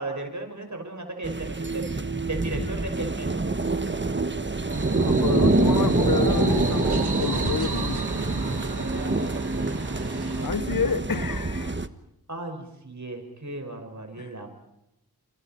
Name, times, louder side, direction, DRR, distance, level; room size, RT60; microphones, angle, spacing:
voice 1, 0.0-1.8 2.2-4.6 7.1-7.3 7.6-8.1 8.6-9.4 10.4-11.0 12.3-14.5, right 2 dB, 50° right, 6.0 m, -37 dB
sound 1, 1.2-11.9, right 3 dB, 30° right, 1.3 m, -26 dB
sound 2, 4.7-10.5, right 4 dB, 90° right, 2.3 m, -34 dB
voice 2, 4.9-8.0 10.4-11.8 14.2-14.3, left 5 dB, 60° left, 1.0 m, -29 dB
30.0 x 27.0 x 4.5 m
wide cardioid pair, 60°, 38 cm